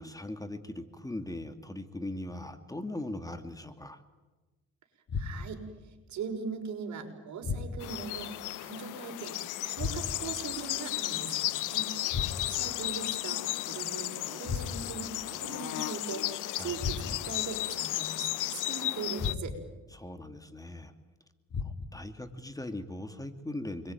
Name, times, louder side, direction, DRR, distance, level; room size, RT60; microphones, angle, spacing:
voice 1, 0.0-4.0 12.2-12.6 16.6-16.8 19.9-20.9 21.6-23.9, left 1 dB, 10° left, 7 dB, 2.4 m, -40 dB
sound 1, 5.1-5.7 7.4-8.1 9.8-10.4 12.1-12.7 14.4-15.1 16.8-17.4 19.2-19.8 21.5-22.1, left 5 dB, 55° left, 3.1 m, -36 dB
voice 2, 5.1-5.6 6.1-9.4 9.6-11.9 12.5-19.6, right 5 dB, 70° right, 5 dB, 5.8 m, -40 dB
sound 2, 7.8-19.4, left 15 dB, 90° left, 1.0 m, -34 dB
28.5 x 22.0 x 9.3 m, 1.2 s
cardioid pair, 90°, 30 cm